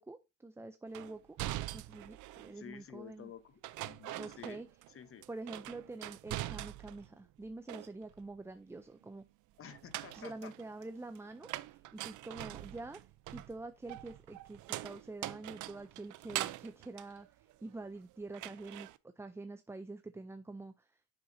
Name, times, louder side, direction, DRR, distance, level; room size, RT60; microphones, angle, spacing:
voice 1, 0.0-1.4 1.7-3.3 4.2-4.7 5.3-9.3 10.1-13.0 13.3-17.3 17.6-18.9 19.2-20.7, right 2 dB, 10° right, 0.4 m, -46 dB
sound 1, 0.9-2.6 3.6-4.9 5.2-7.1 7.4-8.3 9.7-18.0 18.3-19.0, right 16 dB, 85° right, 0.5 m, -43 dB
voice 2, 2.5-4.6 4.9-5.2 6.8-7.2 9.6-10.5, left 9 dB, 45° left, 0.8 m, -51 dB
7.0 x 6.4 x 2.6 m
cardioid pair, 90°, 30 cm